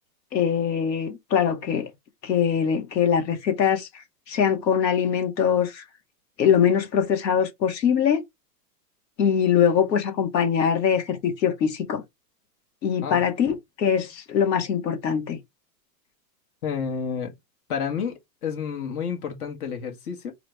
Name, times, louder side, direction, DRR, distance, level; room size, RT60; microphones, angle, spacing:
voice 1, 0.3-1.9 2.2-5.8 6.4-8.2 9.2-12.0 12.8-15.4, left 8 dB, 80° left, 2.1 m, -22 dB
voice 2, 16.6-17.3 17.7-20.3, left 6 dB, 60° left, 1.9 m, -30 dB
4.8 x 3.3 x 3.3 m
supercardioid pair, 170°, 50 cm